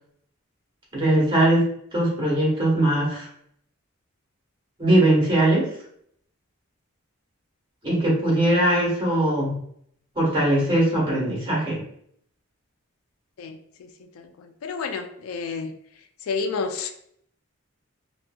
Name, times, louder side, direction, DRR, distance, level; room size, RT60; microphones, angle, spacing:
voice 1, 0.9-1.7 1.9-3.3 4.8-5.7 7.8-9.6 10.1-11.8, right 1 dB, 20° right, -5 dB, 1.0 m, -20 dB
voice 2, 14.2-15.7 16.3-16.9, left 4 dB, 85° left, 8 dB, 0.3 m, -30 dB
2.7 x 2.6 x 2.2 m, 0.67 s
head